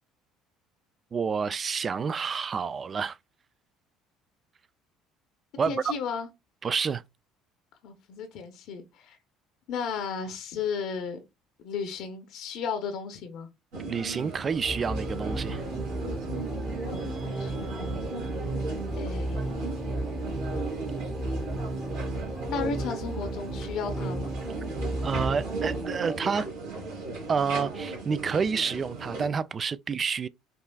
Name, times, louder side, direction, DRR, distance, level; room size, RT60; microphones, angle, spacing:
voice 1, 1.1-3.2 5.6-5.9 6.6-7.0 13.9-15.6 25.0-26.5 27.3-30.3, right 6 dB, 35° right, 0.3 m, -29 dB
voice 2, 5.7-6.3 7.8-9.2 9.7-11.2 11.6-13.5 16.9-18.0 19.0-19.7 22.5-24.3, left 6 dB, 65° left, 0.8 m, -34 dB
sound 1, 13.7-29.3, right 3 dB, 75° right, 2.3 m, -37 dB
sound 2, 14.6-25.9, right 1 dB, 20° right, 1.0 m, -34 dB
sound 3, 15.3-24.7, right 3 dB, 25° left, 0.8 m, -48 dB
5.3 x 2.4 x 2.3 m
hypercardioid pair, 65°, 0 cm